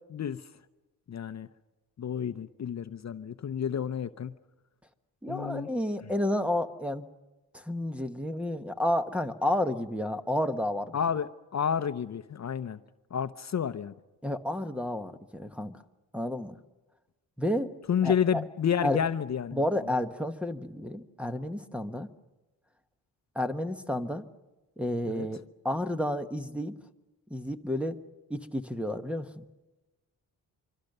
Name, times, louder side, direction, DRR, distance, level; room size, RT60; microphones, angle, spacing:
voice 1, 0.1-0.4 1.1-1.5 2.0-4.3 5.3-5.7 10.9-12.8 13.1-13.9 17.9-19.6 25.1-25.3, left 8 dB, 45° left, 10 dB, 0.7 m, -30 dB
voice 2, 5.2-7.1 7.5-11.0 14.2-15.8 16.1-16.6 17.4-17.7 18.0-18.4 18.8-19.0 19.5-22.1 23.3-24.3 24.8-26.8 27.3-28.0 28.3-29.4, left 1 dB, 5° right, 9 dB, 1.1 m, -31 dB
25.0 x 25.0 x 6.7 m, 1.1 s
wide cardioid pair, 130°, 38 cm